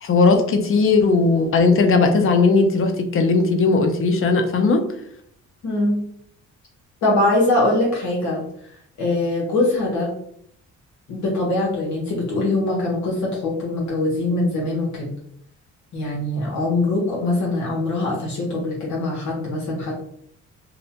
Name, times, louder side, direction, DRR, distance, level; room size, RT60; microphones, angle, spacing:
voice 1, 0.0-4.8, left 4 dB, 45° left, 5 dB, 0.5 m, -17 dB
voice 2, 5.6-6.0 7.0-10.1 11.1-15.1 15.9-20.0, left 2 dB, 70° left, -4 dB, 0.9 m, -22 dB
2.6 x 2.1 x 2.7 m, 0.68 s
cardioid pair, 90°, 30 cm